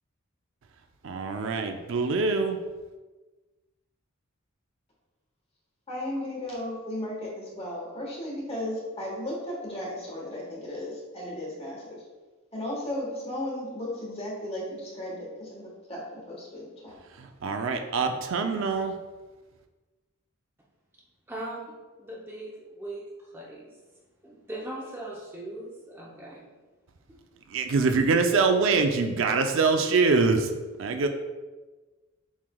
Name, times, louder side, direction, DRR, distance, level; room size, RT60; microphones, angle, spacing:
voice 1, 1.0-2.6 17.2-18.9 27.5-30.5 30.8-31.1, right 4 dB, 65° right, 5 dB, 0.4 m, -24 dB
voice 2, 5.9-12.0 12.5-16.9, left 1 dB, 30° left, -4 dB, 1.3 m, -35 dB
voice 3, 21.3-21.7 22.0-23.0 23.3-23.7 24.2-26.5 27.1-27.2, right 1 dB, 10° right, -4 dB, 0.5 m, -39 dB
7.1 x 3.2 x 2.3 m, 1.2 s
head